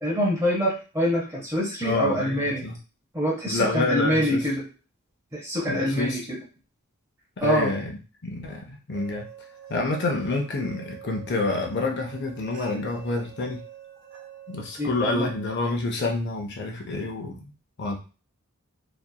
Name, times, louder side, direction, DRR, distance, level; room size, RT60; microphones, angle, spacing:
voice 1, 0.0-2.7 3.1-4.6 5.3-6.4 7.4-7.7 14.8-15.3, equal, 15° right, -4 dB, 0.7 m, -25 dB
voice 2, 1.8-2.8 3.4-4.5 5.7-6.2 7.4-7.9 8.2-9.3 9.7-13.6 14.5-17.5 17.8-18.0, left 2 dB, 50° left, 1 dB, 0.5 m, -28 dB
sound 1, 8.9-15.5, right 10 dB, 45° right, 0.3 m, -45 dB
2.8 x 2.4 x 2.2 m, 0.34 s
head